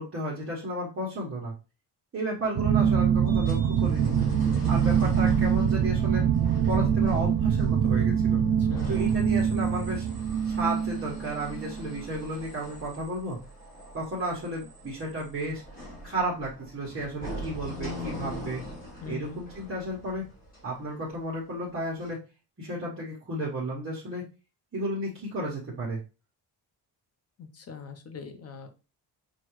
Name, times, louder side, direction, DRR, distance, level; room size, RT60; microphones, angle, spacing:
voice 1, 0.0-1.5 2.1-4.2 4.7-6.3 6.7-8.4 8.9-10.1 10.4-13.4 13.9-15.6 16.0-18.6 19.0-20.3 20.6-22.2 22.6-24.3 24.7-26.0, right 1 dB, 30° right, -5 dB, 1.1 m, -33 dB
sound 1, 2.5-12.0, right 8 dB, 60° right, 0.5 m, -24 dB
sound 2, 3.3-21.4 22.0-22.1, right 1 dB, 20° left, 1.3 m, -41 dB
voice 2, 8.6-9.0 19.0-19.4 27.4-28.7, left 6 dB, 35° left, 7 dB, 0.7 m, -41 dB
6.0 x 2.3 x 3.1 m, 0.31 s
wide cardioid pair, 170°, 41 cm